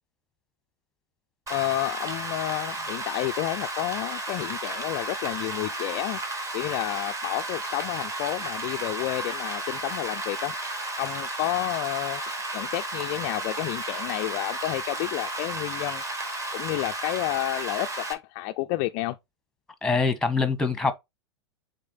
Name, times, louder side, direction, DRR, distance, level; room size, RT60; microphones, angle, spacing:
voice 1, 1.5-6.2 6.5-10.5 11.0-12.2 12.5-16.0 16.5-19.2, left 17 dB, 45° left, 0.4 m, -30 dB
Rain, 1.5-18.1, right 2 dB, 20° right, 2.0 m, -33 dB
voice 2, 19.8-20.9, left 4 dB, 5° left, 1.3 m, -24 dB
6.3 x 4.3 x 4.0 m
hypercardioid pair, 100°, 15 cm